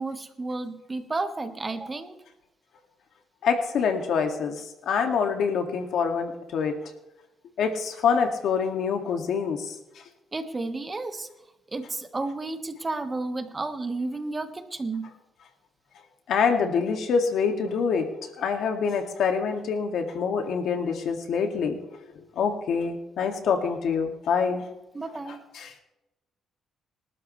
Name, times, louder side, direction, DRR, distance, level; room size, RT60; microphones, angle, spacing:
voice 1, 0.0-2.2 10.3-11.3 11.7-15.1 24.9-25.4, right 3 dB, 25° right, 8 dB, 1.5 m, -32 dB
voice 2, 3.4-4.6 4.9-6.7 7.6-9.6 16.3-18.1 18.4-21.8 22.4-24.6 25.3-25.7, left 6 dB, 70° left, 4 dB, 2.3 m, -25 dB
27.0 x 12.5 x 3.3 m, 0.92 s
cardioid pair, 90°, 0 cm